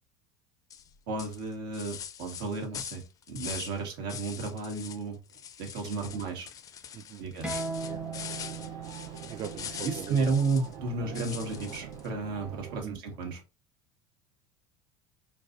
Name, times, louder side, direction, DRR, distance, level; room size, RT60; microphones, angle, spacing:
sound 1, 0.7-0.9 1.2-3.8 4.1-5.0 5.3-10.7 11.1-12.1, left 8 dB, 30° left, 0.4 m, -42 dB
voice 1, 1.1-5.2 5.6-6.5 7.2-7.6 9.7-13.4, right 4 dB, 85° right, 1.5 m, -33 dB
voice 2, 6.9-7.2 7.9-8.0 9.3-10.2 11.0-11.1 12.8-13.0, right 8 dB, 35° right, 0.4 m, -40 dB
sound 2, 7.4-12.6, right 4 dB, 10° right, 0.7 m, -41 dB
sound 3, 7.5-12.8, right 7 dB, 70° right, 0.7 m, -44 dB
4.6 x 2.5 x 2.6 m
supercardioid pair, 110°, 11 cm